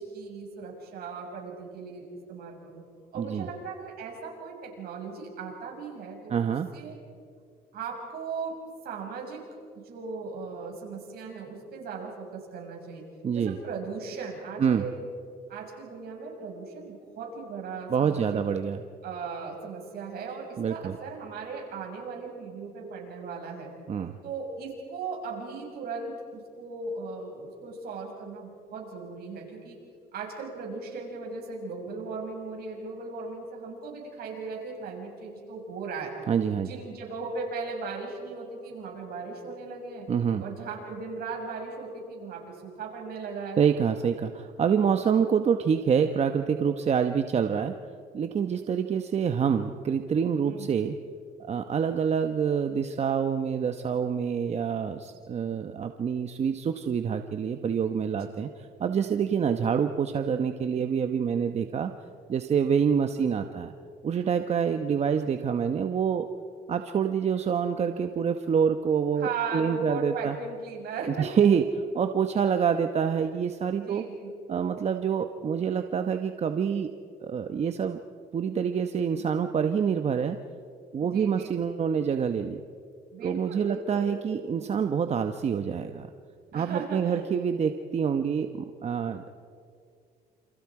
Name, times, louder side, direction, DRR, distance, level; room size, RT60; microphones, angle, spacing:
voice 1, 0.0-2.8 3.1-7.0 7.7-8.5 8.8-9.4 9.7-13.0 13.3-15.1 15.5-18.4 19.0-23.7 24.2-29.8 30.1-36.1 36.6-40.1 40.4-43.6 50.4-50.7 58.2-58.3 69.2-71.3 73.7-74.3 81.0-81.5 83.1-84.2 86.5-87.3, right 4 dB, 65° right, 0 dB, 6.8 m, -37 dB
voice 2, 3.2-3.5 6.3-6.7 13.2-13.6 14.6-14.8 17.9-18.8 20.6-21.0 23.9-24.1 36.3-36.7 40.1-40.4 43.6-47.7 48.1-51.0 51.5-58.5 58.8-61.9 62.3-63.7 64.0-66.3 66.7-70.4 71.1-74.0 74.5-76.9 77.2-78.0 78.3-80.4 80.9-82.6 83.2-86.1 86.5-89.3, right 7 dB, 40° right, 7 dB, 1.0 m, -26 dB
28.5 x 28.0 x 4.9 m, 2.3 s
cardioid pair, 110°, 17 cm